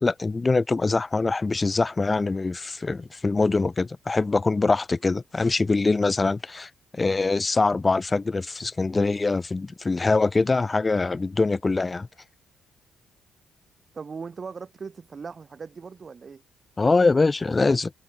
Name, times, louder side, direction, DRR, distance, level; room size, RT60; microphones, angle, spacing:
voice 1, 0.0-12.1 16.8-17.9, left 3 dB, 25° left, 0.8 m, -23 dB
voice 2, 13.9-16.4, right 5 dB, 40° right, 5.0 m, -39 dB
cardioid pair, 90°, 0 cm